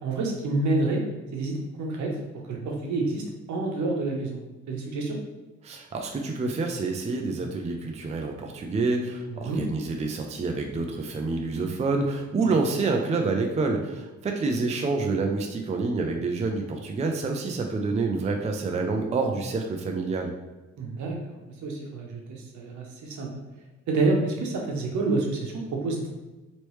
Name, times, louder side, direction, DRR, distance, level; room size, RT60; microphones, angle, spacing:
voice 1, 0.0-1.0 1.3-2.1 2.5-3.2 3.5-4.4 4.7-5.2 9.3-9.6 12.4-12.5 20.8-23.3 23.9-26.1, right 3 dB, 70° right, 0 dB, 0.9 m, -28 dB
voice 2, 5.6-20.3, right 3 dB, 25° right, 2 dB, 0.4 m, -27 dB
3.1 x 3.0 x 3.1 m, 1.1 s
cardioid pair, 90°, 30 cm